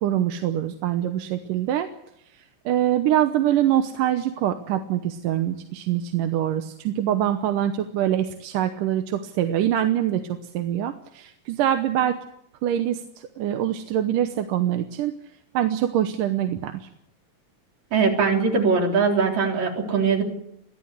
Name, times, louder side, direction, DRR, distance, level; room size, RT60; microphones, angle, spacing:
voice 1, 0.0-1.9 2.3-12.2 12.6-15.1 15.5-16.9, right 11 dB, 85° right, 7 dB, 2.6 m, -24 dB
voice 2, 17.9-20.2, right 5 dB, 60° right, 1 dB, 4.8 m, -21 dB
22.5 x 15.0 x 8.2 m, 0.78 s
omnidirectional pair, 3.7 m